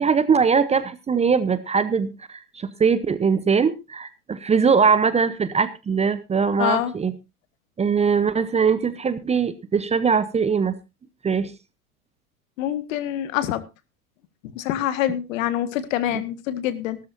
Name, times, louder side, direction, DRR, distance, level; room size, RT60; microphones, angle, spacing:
voice 1, 0.0-7.1 7.8-10.8 11.2-11.5, right 6 dB, 15° right, 14 dB, 0.8 m, -21 dB
voice 2, 6.6-6.9 12.6-13.6 14.5-17.0, left 12 dB, 60° left, 13 dB, 1.8 m, -25 dB
17.5 x 12.5 x 2.7 m, 0.26 s
hypercardioid pair, 105°, 45 cm